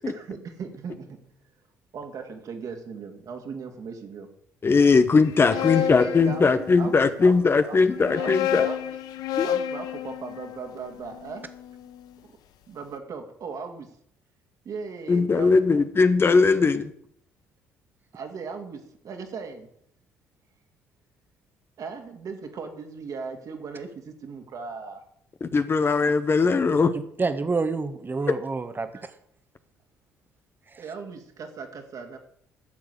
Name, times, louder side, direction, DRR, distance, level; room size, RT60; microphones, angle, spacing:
voice 1, 0.1-1.2 1.9-4.3 5.4-7.0 7.2-9.0 9.4-11.5 11.8-11.9 12.3-12.4 12.7-14.0 14.6-15.5 18.1-19.7 21.8-25.0 28.9-29.0 30.8-32.2, right 5 dB, 55° right, 4 dB, 2.5 m, -38 dB
voice 2, 4.6-8.7 9.4-9.5 15.1-16.9 25.4-26.9 28.3-28.4, left 4 dB, 35° left, 11 dB, 1.0 m, -20 dB
sound 1, 5.2-7.1 7.8-12.0, left 10 dB, 65° left, 0.8 m, -30 dB
voice 3, 27.2-29.1 30.7-30.8, right 4 dB, 30° right, 9 dB, 1.6 m, -28 dB
12.0 x 7.0 x 8.3 m, 0.68 s
hypercardioid pair, 50°, 7 cm